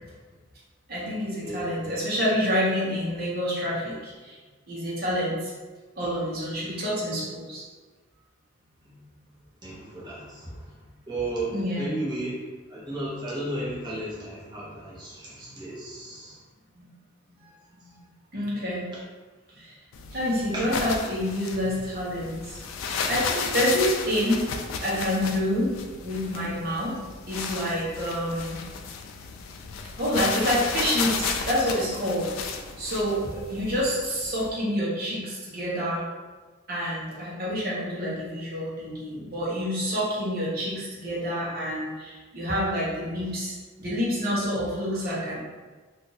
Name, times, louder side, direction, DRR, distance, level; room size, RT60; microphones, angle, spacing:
voice 1, 0.9-4.4 4.7-5.5 6.0-7.6 8.9-9.1 11.5-11.9 16.7-16.9 17.8-17.9 18.3-18.9 19.6-19.7 20.1-22.6 23.0-24.4 24.8-25.7 26.0-27.0 27.3-28.6 30.0-32.3 32.8-36.0 36.7-45.5, equal, 50° right, -7 dB, 1.1 m, -28 dB
voice 2, 1.4-1.8 9.6-10.5 11.1-12.3 12.7-16.4 20.5-20.6, right 1 dB, 20° right, -8 dB, 0.9 m, -34 dB
sound 1, 19.9-34.5, left 5 dB, 90° left, 0.4 m, -33 dB
2.7 x 2.5 x 4.0 m, 1.3 s
head